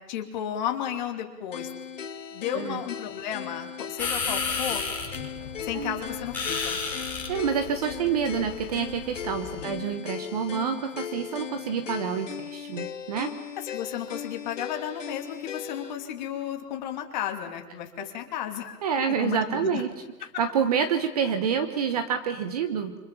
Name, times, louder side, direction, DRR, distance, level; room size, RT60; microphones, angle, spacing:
voice 1, 0.1-1.7 2.3-4.8 5.6-6.8 9.6-9.8 13.6-18.8 19.2-19.8 20.2-20.3, left 10 dB, 30° left, 4 dB, 3.0 m, -33 dB
sound 1, 1.5-16.0, left 8 dB, 50° left, 1.9 m, -38 dB
sound 2, 4.0-9.6, left 4 dB, 5° left, 5.5 m, -33 dB
voice 2, 7.3-13.3 18.0-18.1 18.8-19.9 20.4-22.9, right 7 dB, 25° right, 8 dB, 1.2 m, -28 dB
28.5 x 26.0 x 7.1 m, 1.1 s
hypercardioid pair, 160°, 48 cm